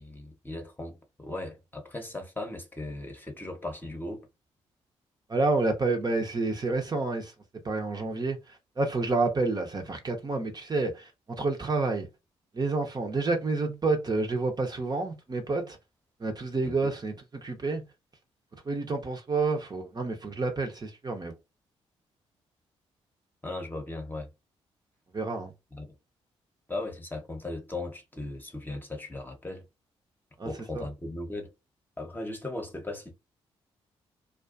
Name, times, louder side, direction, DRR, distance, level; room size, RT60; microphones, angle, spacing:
voice 1, 0.0-4.3 16.6-16.9 23.4-24.3 25.7-25.9 26.7-29.7 30.4-31.5 32.0-33.1, left 2 dB, 15° left, 0.9 m, -37 dB
voice 2, 5.3-7.3 7.6-12.1 12.5-15.8 16.2-17.8 18.7-21.4 25.1-25.5 30.4-30.9, right 3 dB, 30° right, 0.7 m, -29 dB
2.4 x 2.3 x 2.4 m
hypercardioid pair, 40°, 14 cm